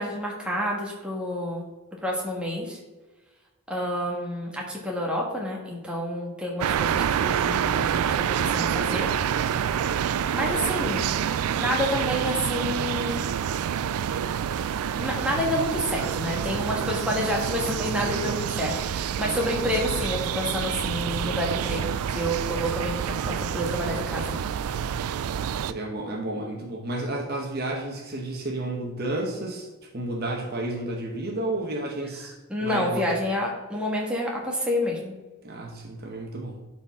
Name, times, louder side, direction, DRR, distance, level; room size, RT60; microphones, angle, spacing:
voice 1, 0.0-1.6 2.0-2.8 3.7-9.1 10.3-11.1 11.5-13.2 14.9-24.3 32.5-35.1, equal, 5° right, -2 dB, 1.4 m, -29 dB
sound 1, 6.6-25.7, right 8 dB, 80° right, 0.3 m, -27 dB
voice 2, 25.6-29.7 29.9-32.3 32.6-33.1 35.4-36.6, right 2 dB, 45° right, 1 dB, 1.0 m, -31 dB
11.5 x 4.3 x 3.6 m, 1.2 s
head